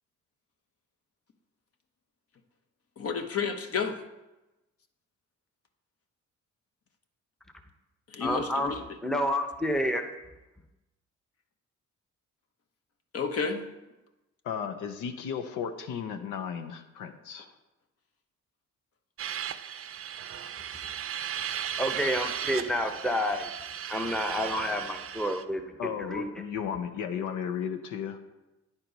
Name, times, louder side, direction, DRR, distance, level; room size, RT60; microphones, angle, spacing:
voice 1, 3.0-4.0 8.1-8.8 13.1-13.6, left 5 dB, 50° left, 7 dB, 1.0 m, -31 dB
voice 2, 8.2-8.7 9.0-10.0 21.8-23.5 23.9-25.7 26.1-26.3, equal, ahead, 5 dB, 0.8 m, -29 dB
voice 3, 14.4-17.5 25.8-28.2, left 7 dB, 90° left, 7 dB, 0.7 m, -34 dB
sound 1, 19.2-25.4, right 9 dB, 50° right, 0.5 m, -36 dB
9.8 x 4.4 x 5.2 m, 1.0 s
cardioid pair, 90°, 30 cm